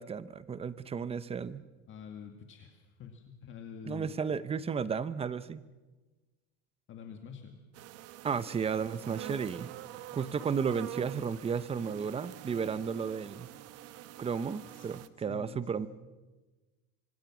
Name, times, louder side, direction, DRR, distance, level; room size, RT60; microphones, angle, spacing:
voice 1, 0.0-1.6 3.8-5.6 8.2-9.7 10.1-13.5 14.2-15.9, right 6 dB, 20° right, 16 dB, 0.7 m, -33 dB
voice 2, 1.9-4.2 6.9-7.6 14.7-14.9 15.3-15.9, left 7 dB, 40° left, 4 dB, 2.0 m, -47 dB
sound 1, 7.7-15.1, right 14 dB, 50° right, 1.1 m, -46 dB
26.0 x 24.5 x 6.1 m, 1.3 s
cardioid pair, 140°, 32 cm